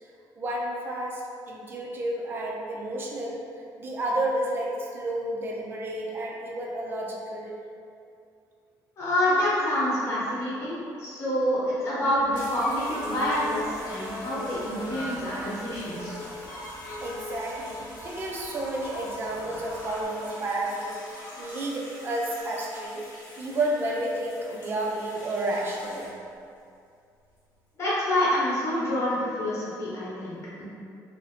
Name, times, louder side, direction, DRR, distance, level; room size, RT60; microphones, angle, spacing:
voice 1, 0.4-7.6 17.0-23.0 23.4-26.1, right 1 dB, 30° right, -2 dB, 0.5 m, -31 dB
voice 2, 9.0-16.1 27.8-30.7, left 1 dB, 40° left, -9 dB, 0.9 m, -27 dB
sound 1, 12.1-20.0, left 1 dB, 70° left, 0.8 m, -40 dB
sound 2, 12.3-26.4 27.2-27.6, left 1 dB, 85° left, 1.2 m, -43 dB
4.0 x 2.0 x 2.8 m, 2.5 s
cardioid pair, 150°, 7 cm